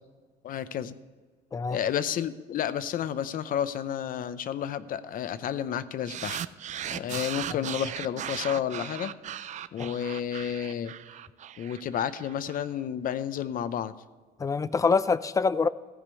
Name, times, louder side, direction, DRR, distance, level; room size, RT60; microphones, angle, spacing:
voice 1, 0.4-1.0 1.7-6.4 6.9-9.1 9.4-10.9 11.6-13.9, left 9 dB, 55° left, 14 dB, 0.6 m, -31 dB
sound 1, 6.1-12.6, right 10 dB, 45° right, 0.4 m, -37 dB
voice 2, 14.4-15.7, left 4 dB, 20° left, 17 dB, 0.4 m, -25 dB
14.5 x 5.1 x 8.3 m, 1.4 s
cardioid pair, 110°, 17 cm